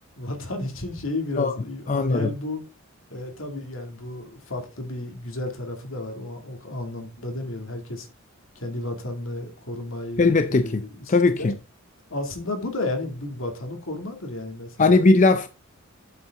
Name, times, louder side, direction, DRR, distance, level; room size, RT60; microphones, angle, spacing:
voice 1, 0.2-2.6 3.1-8.1 8.6-11.5 12.1-15.0, left 2 dB, 70° left, 2.5 m, -32 dB
voice 2, 1.9-2.3 10.2-10.8 11.1-11.5 14.8-15.5, left 3 dB, 35° left, 0.5 m, -19 dB
8.3 x 7.7 x 3.7 m
head